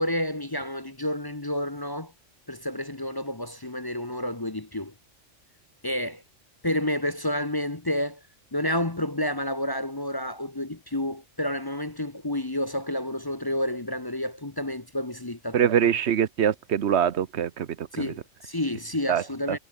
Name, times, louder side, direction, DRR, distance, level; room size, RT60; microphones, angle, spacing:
voice 1, 0.0-2.1 2.5-4.9 5.8-6.2 6.6-8.2 8.5-15.9 17.9-19.6, left 1 dB, 20° left, 1.0 m, -30 dB
voice 2, 15.5-18.1 19.1-19.6, right 9 dB, 60° right, 1.1 m, -24 dB
omnidirectional pair, 1.3 m